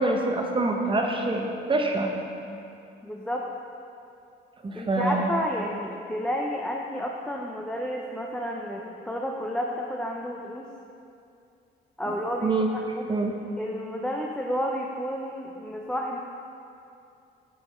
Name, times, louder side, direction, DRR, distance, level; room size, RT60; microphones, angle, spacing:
voice 1, 0.0-1.4 1.7-2.1 4.6-5.3 12.4-12.7 13.1-13.3, right 2 dB, 25° right, 2 dB, 0.9 m, -25 dB
voice 2, 3.0-3.4 4.7-10.7 12.0-13.1 13.6-16.2, equal, 5° left, -1 dB, 0.5 m, -31 dB
6.6 x 5.1 x 4.3 m, 2.6 s
cardioid pair, 90°, 20 cm